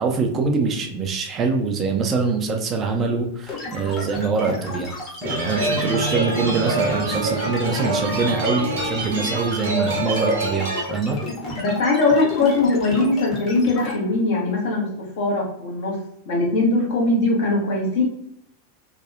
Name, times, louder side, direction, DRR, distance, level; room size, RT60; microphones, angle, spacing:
voice 1, 0.0-5.0 5.2-11.2, right 4 dB, 25° right, 3 dB, 0.4 m, -24 dB
sound 1, 3.5-13.9, left 2 dB, 30° left, 1.1 m, -33 dB
sound 2, 5.2-10.8, right 2 dB, 60° right, 0.7 m, -26 dB
voice 2, 11.3-14.9 15.2-16.0 16.3-18.0, left 2 dB, 55° left, -2 dB, 0.9 m, -21 dB
2.6 x 2.3 x 2.5 m, 0.77 s
figure-of-eight pair, 90°, 0 cm